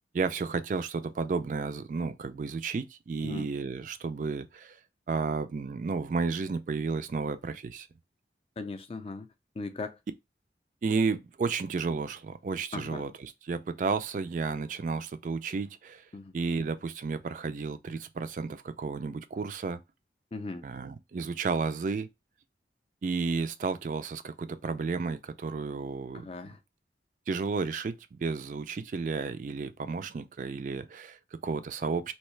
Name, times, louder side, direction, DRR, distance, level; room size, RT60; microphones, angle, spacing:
voice 1, 0.1-4.8 5.1-7.9 10.8-16.1 16.3-19.8 20.6-22.1 23.0-26.3 27.3-32.1, right 4 dB, 45° right, 0.3 m, -32 dB
voice 2, 8.6-9.3 9.6-10.0 12.7-13.0 16.1-16.3 20.3-20.6 26.1-26.6, left 3 dB, 30° left, 0.4 m, -38 dB
3.1 x 2.7 x 3.1 m
head